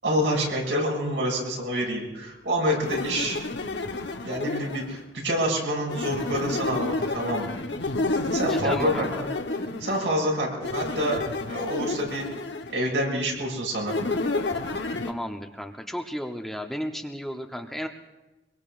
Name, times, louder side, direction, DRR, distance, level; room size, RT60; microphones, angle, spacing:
voice 1, 0.0-3.4 4.2-7.5 8.1-8.9 9.2-9.3 9.8-11.2 11.5-12.3 12.7-14.0, equal, 85° right, -2 dB, 6.7 m, -27 dB
sound 1, 2.8-5.0 5.9-10.1 10.6-12.8 13.9-15.1, left 2 dB, 80° left, 1.1 m, -30 dB
voice 2, 8.5-9.1 15.1-17.9, equal, ahead, 3 dB, 0.8 m, -33 dB
24.5 x 22.5 x 2.5 m, 1.0 s
head